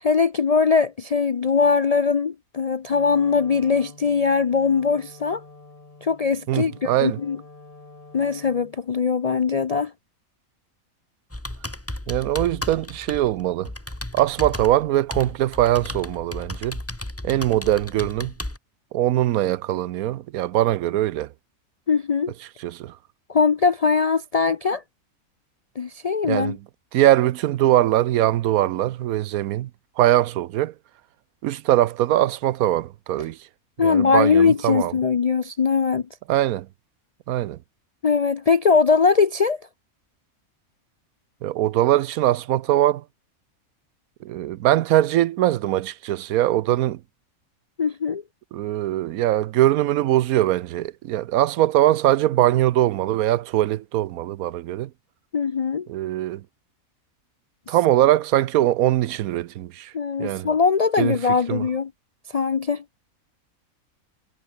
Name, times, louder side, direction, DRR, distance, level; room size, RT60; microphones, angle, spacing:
voice 1, 0.0-5.4 6.0-7.4 8.1-9.9 21.9-22.3 23.3-24.8 25.8-26.6 33.8-36.1 38.0-39.6 47.8-48.2 55.3-55.9 57.7-57.8 59.9-61.9 62.3-62.8, left 5 dB, 65° left, 0.3 m, -21 dB
Wind instrument woodwind instrument, 2.9-8.9, left 3 dB, 25° left, 1.9 m, -47 dB
voice 2, 6.5-7.2 12.1-13.7 14.1-16.8 17.2-18.3 18.9-21.3 22.6-22.9 26.2-26.6 26.9-29.7 30.0-30.7 31.4-33.4 33.8-34.9 36.3-36.7 37.3-37.6 41.4-43.0 44.2-47.0 48.5-54.9 55.9-56.4 57.7-59.9 60.2-60.5 61.0-61.1 61.5-61.6, right 14 dB, 90° right, 1.1 m, -21 dB
Computer keyboard, 11.3-18.6, left 1 dB, 10° left, 1.7 m, -34 dB
omnidirectional pair, 1.5 m